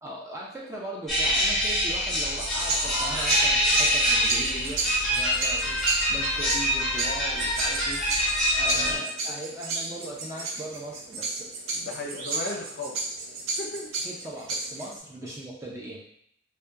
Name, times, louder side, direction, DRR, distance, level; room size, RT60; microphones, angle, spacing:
voice 1, 0.0-5.6 6.1-8.0 8.5-11.5 12.4-12.6 14.0-16.0, right 1 dB, 15° right, -4 dB, 0.4 m, -39 dB
sound 1, 1.1-9.0, equal, ahead, 0.8 m, -25 dB
sound 2, 2.4-15.0, right 3 dB, 85° right, 0.4 m, -33 dB
voice 2, 11.7-13.0 13.6-13.9 15.2-15.3, left 2 dB, 55° left, -1 dB, 0.5 m, -36 dB
2.7 x 2.2 x 2.3 m, 0.70 s
head